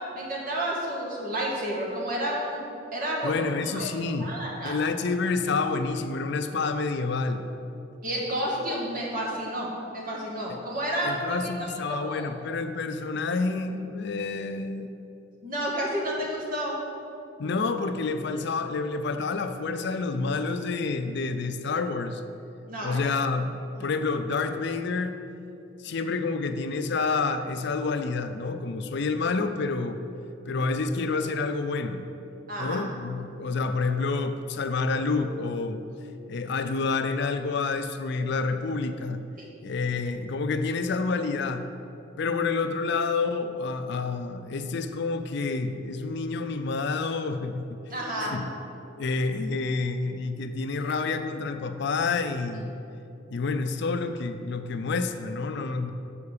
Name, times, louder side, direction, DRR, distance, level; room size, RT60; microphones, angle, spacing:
voice 1, 0.1-2.7 2.9-3.9 4.2-4.7 8.0-11.2 11.6-12.3 15.4-16.8 22.7-23.0 23.8-23.9 32.5-32.8 39.4-39.5 47.9-48.4, right 1 dB, 50° right, -3 dB, 1.7 m, -31 dB
voice 2, 3.2-4.3 4.6-7.4 10.5-10.6 11.0-14.9 17.4-22.2 22.8-25.2 25.8-30.0 30.5-32.0 32.6-35.8 36.3-39.2 39.6-41.7 42.2-47.8 48.2-48.4 49.0-52.7 53.3-55.9, left 4 dB, 65° left, 8 dB, 0.5 m, -28 dB
7.1 x 4.7 x 6.6 m, 2.7 s
head